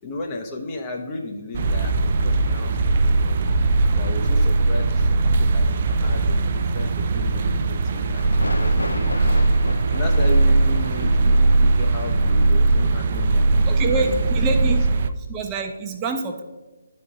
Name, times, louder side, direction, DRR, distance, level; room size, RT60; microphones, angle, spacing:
voice 1, 0.0-3.4 3.9-14.3, left 2 dB, 20° left, 1 dB, 0.8 m, -34 dB
sound 1, 1.5-5.7 6.2-6.3 7.2-7.3 7.8-7.9 8.1-12.5, left 1 dB, 75° left, 0.6 m, -35 dB
sound 2, 1.5-15.1, right 3 dB, 35° right, 0.4 m, -19 dB
voice 2, 13.7-14.9 15.2-16.4, right 3 dB, 15° right, 4 dB, 0.8 m, -26 dB
11.0 x 4.4 x 4.9 m, 1.2 s
figure-of-eight pair, 145°, 0 cm